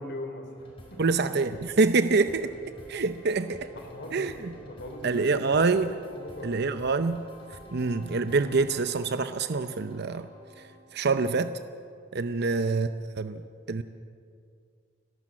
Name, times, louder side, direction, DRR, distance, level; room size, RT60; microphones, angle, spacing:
voice 1, 0.0-1.0 3.7-4.3 4.5-5.4 6.1-6.6 12.2-12.5, left 1 dB, 60° left, 4 dB, 3.2 m, -40 dB
sound 1, 0.6-11.0, equal, 30° left, 4.8 m, -50 dB
voice 2, 1.0-2.5 2.9-3.7 4.1-4.5 5.0-6.0 6.4-7.2 7.7-10.3 10.9-11.6 12.1-12.9 13.2-13.4 13.7-13.8, right 4 dB, 55° right, 10 dB, 0.6 m, -26 dB
30.0 x 12.5 x 7.5 m, 2.3 s
head